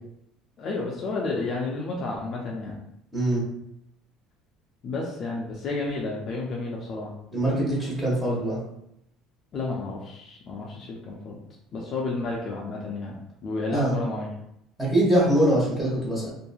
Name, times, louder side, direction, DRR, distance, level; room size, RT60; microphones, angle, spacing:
voice 1, 0.6-2.7 4.8-7.1 9.5-11.4 11.7-13.1 13.4-14.3, left 3 dB, 35° left, -2 dB, 0.4 m, -31 dB
voice 2, 3.1-3.4 7.3-8.6 13.7-14.0 14.8-16.3, right 1 dB, 5° right, -6 dB, 1.0 m, -23 dB
2.8 x 2.5 x 2.3 m, 0.79 s
cardioid pair, 155°, 0 cm